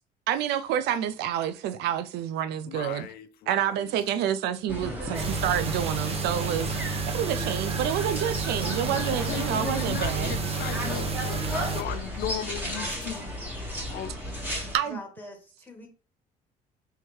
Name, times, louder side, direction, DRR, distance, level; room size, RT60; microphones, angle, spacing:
voice 1, 0.3-3.1 3.5-10.4 14.7-15.0, right 10 dB, 80° right, 0.4 m, -28 dB
voice 2, 2.7-3.9 9.0-13.3 13.9-14.1, left 11 dB, 65° left, 0.4 m, -37 dB
sound 1, 4.7-14.8, equal, 10° right, 1.5 m, -34 dB
sound 2, 5.1-11.8, right 5 dB, 35° right, 0.8 m, -31 dB
voice 3, 14.8-15.9, left 2 dB, 10° left, 1.5 m, -44 dB
4.5 x 3.4 x 3.1 m
cardioid pair, 110°, 17 cm